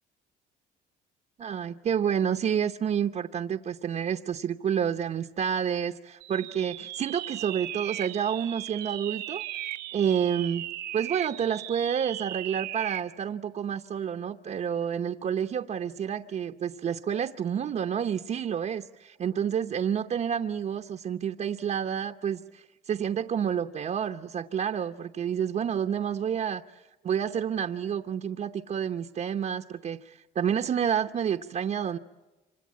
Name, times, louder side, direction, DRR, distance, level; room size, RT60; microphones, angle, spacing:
voice 1, 1.4-10.7 10.9-32.0, right 8 dB, 45° right, 5 dB, 0.9 m, -29 dB
sound 1, 6.2-13.1, right 13 dB, 80° right, 0.8 m, -37 dB
26.5 x 25.5 x 8.5 m, 1.1 s
cardioid pair, 110°, 17 cm